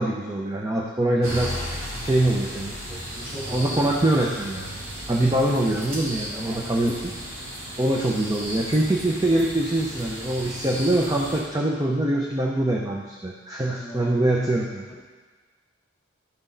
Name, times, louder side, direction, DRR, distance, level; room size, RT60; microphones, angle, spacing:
voice 1, 0.0-3.0 3.5-4.7 5.1-7.1 7.8-14.9, right 1 dB, 20° right, -1 dB, 0.6 m, -24 dB
sound 1, 1.2-11.4, equal, 75° right, 2.5 m, -35 dB
voice 2, 3.1-3.9 6.3-6.5 13.7-14.0, equal, 10° left, -6 dB, 2.4 m, -36 dB
12.0 x 6.2 x 3.9 m, 1.4 s
head